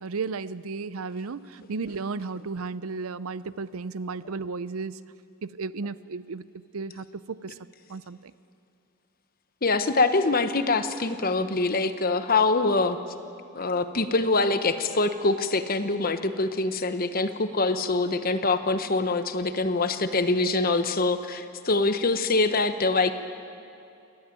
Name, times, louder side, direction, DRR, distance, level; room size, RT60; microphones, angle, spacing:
voice 1, 0.0-5.0 5.4-6.5 6.7-7.6 7.9-8.3, right 4 dB, 75° right, 16 dB, 0.6 m, -34 dB
voice 2, 9.6-13.0 13.5-23.1, left 3 dB, 40° left, 9 dB, 1.0 m, -24 dB
28.5 x 12.5 x 9.2 m, 2.6 s
head